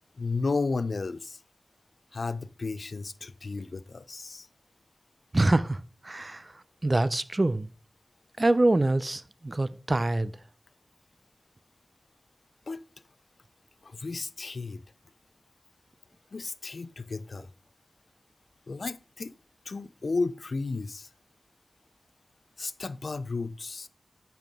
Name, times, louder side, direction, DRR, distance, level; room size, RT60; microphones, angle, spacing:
voice 1, 0.1-1.4 2.1-4.5 12.7-12.8 13.8-14.8 16.3-17.5 18.7-19.3 19.7-21.1 22.6-23.9, left 3 dB, 80° left, 0.4 m, -33 dB
voice 2, 5.3-7.7 8.4-10.3, right 2 dB, 40° right, 0.5 m, -25 dB
9.0 x 5.7 x 3.6 m
wide cardioid pair, 45°, 0 cm